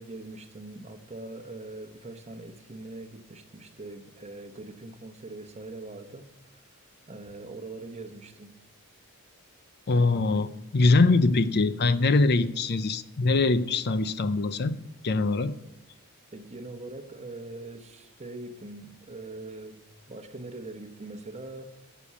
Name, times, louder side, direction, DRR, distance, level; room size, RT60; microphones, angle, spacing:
voice 1, 0.0-8.5 16.3-19.8 20.1-21.7, right 2 dB, 30° right, 1.0 m, -42 dB
voice 2, 9.9-14.8 15.0-15.5, left 3 dB, 45° left, 0.6 m, -23 dB
12.0 x 7.0 x 8.3 m
head